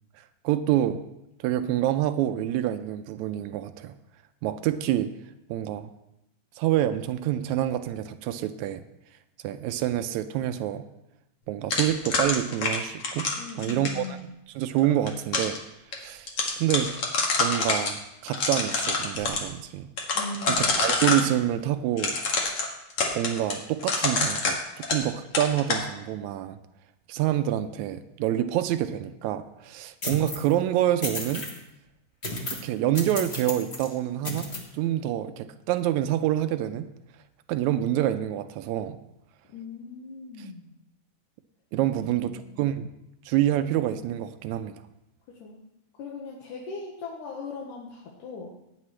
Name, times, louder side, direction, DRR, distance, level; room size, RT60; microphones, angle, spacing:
voice 1, 0.4-1.1 1.4-3.9 4.4-5.1 5.5-5.9 6.6-8.8 9.4-10.9 11.5-13.3 13.6-14.2 14.6-15.6 16.0-16.9 17.4-18.0 18.2-19.9 20.5-22.2 23.2-24.6 24.9-26.6 27.1-31.5 32.5-34.5 34.7-36.9 37.5-39.0 41.7-42.9 43.3-44.7, right 12 dB, 80° right, 10 dB, 1.7 m, -27 dB
sound 1, 11.7-14.1 14.8-15.6 15.9-16.0 16.3-17.9 18.3-19.4 20.0-21.3 22.0-25.1 25.3-25.8, left 3 dB, 50° left, 2.3 m, -26 dB
voice 2, 13.4-14.3 20.2-20.7 39.5-40.7 42.1-42.5 45.4-45.6 46.0-48.5, left 3 dB, 75° left, -2 dB, 2.8 m, -39 dB
sound 2, 30.0-30.5 31.0-31.6 32.2-32.7 33.0-33.9 34.2-34.6, left 1 dB, 35° left, 1.1 m, -33 dB
17.0 x 9.5 x 3.2 m, 0.85 s
omnidirectional pair, 3.7 m